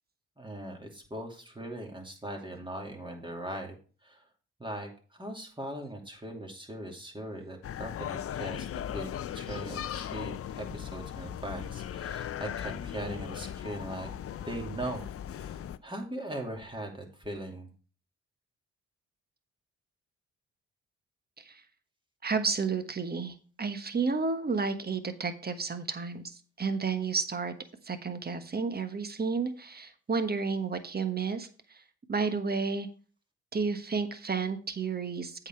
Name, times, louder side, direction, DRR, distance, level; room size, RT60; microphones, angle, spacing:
voice 1, 0.4-3.8 4.0-4.3 4.6-14.1 14.4-15.0 15.4-17.7, right 1 dB, 15° right, 2 dB, 2.7 m, -40 dB
sound 1, 7.6-15.8, left 10 dB, 50° left, 0.5 m, -38 dB
voice 2, 22.2-27.5 27.8-31.8 32.1-32.9 33.5-35.5, right 4 dB, 30° right, 9 dB, 1.3 m, -31 dB
8.0 x 6.1 x 4.6 m, 0.38 s
supercardioid pair, 50°, 30 cm